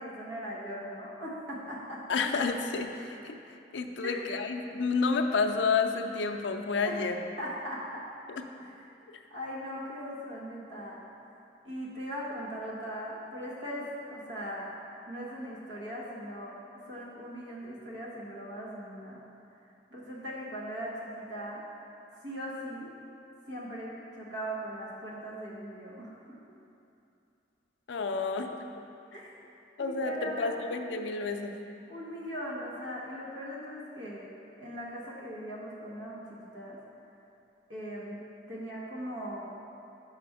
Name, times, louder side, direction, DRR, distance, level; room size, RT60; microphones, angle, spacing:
voice 1, 0.0-2.0 4.0-4.2 6.8-7.0 7.4-8.0 8.6-8.7 9.3-11.0 11.6-14.7 15.1-19.2 19.9-21.6 22.2-22.9 23.5-26.4 29.1-29.3 29.8-30.7 31.9-34.3 34.6-36.8 37.7-38.2 38.5-39.5, equal, 85° right, -5 dB, 1.3 m, -39 dB
voice 2, 2.1-7.2 8.3-8.4 27.9-28.6 29.8-31.5, left 4 dB, 85° left, 5 dB, 0.4 m, -30 dB
5.0 x 5.0 x 4.7 m, 2.7 s
head